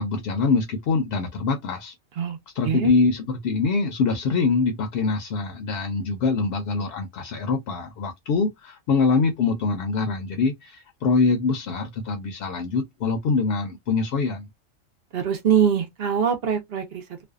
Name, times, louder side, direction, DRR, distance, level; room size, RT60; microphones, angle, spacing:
voice 1, 0.0-1.9 2.5-14.5, left 4 dB, 65° left, 0.7 m, -24 dB
voice 2, 15.1-17.2, right 8 dB, 60° right, 0.8 m, -23 dB
2.5 x 2.2 x 2.3 m
omnidirectional pair, 1.2 m